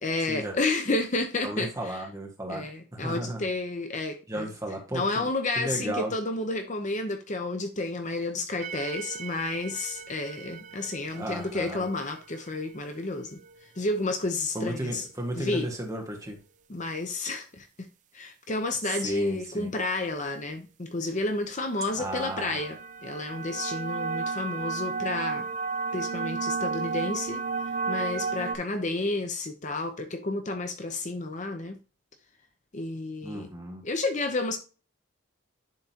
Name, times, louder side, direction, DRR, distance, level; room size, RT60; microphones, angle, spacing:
voice 1, 0.0-2.0 2.5-4.5 4.9-13.4 13.8-15.1 15.4-15.7 16.7-17.9 18.1-25.5 25.9-27.4 27.9-31.8 32.7-33.5 33.8-34.6, left 2 dB, 35° left, 0.8 m, -31 dB
voice 2, 1.4-3.4 4.3-5.3 5.6-6.1 11.1-11.8 14.5-16.4 18.9-19.7 22.0-22.6 33.2-33.8, right 1 dB, 15° right, 1.7 m, -34 dB
sound 1, 8.6-15.0 21.8-28.6, right 4 dB, 40° right, 0.5 m, -34 dB
10.5 x 3.9 x 2.8 m
head